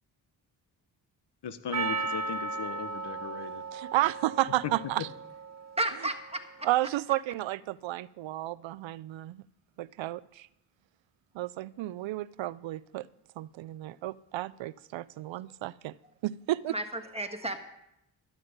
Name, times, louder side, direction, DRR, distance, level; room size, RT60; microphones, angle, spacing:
voice 1, 1.4-3.6, left 6 dB, 60° left, 11 dB, 1.2 m, -38 dB
Percussion, 1.7-6.2, right 3 dB, 35° right, 1.7 m, -36 dB
voice 2, 3.7-5.1 6.6-9.4 9.8-10.5 11.3-13.1 13.4-15.9 16.2-16.7, right 15 dB, 75° right, 20 dB, 0.6 m, -32 dB
voice 3, 5.8-6.7 16.7-17.6, right 1 dB, 15° right, 6 dB, 1.7 m, -33 dB
13.0 x 10.5 x 5.1 m, 0.82 s
supercardioid pair, 50°, 46 cm